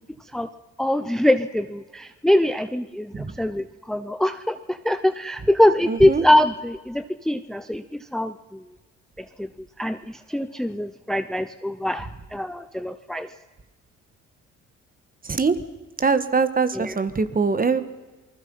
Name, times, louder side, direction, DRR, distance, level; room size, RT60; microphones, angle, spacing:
voice 1, 0.8-7.8 8.1-8.6 9.2-9.5 9.8-13.3 16.7-16.9, left 1 dB, ahead, 11 dB, 0.7 m, -23 dB
voice 2, 5.9-6.2 15.2-15.6 16.0-17.9, right 4 dB, 30° right, 11 dB, 1.6 m, -22 dB
28.0 x 20.0 x 5.6 m, 1.2 s
cardioid pair, 90°, 30 cm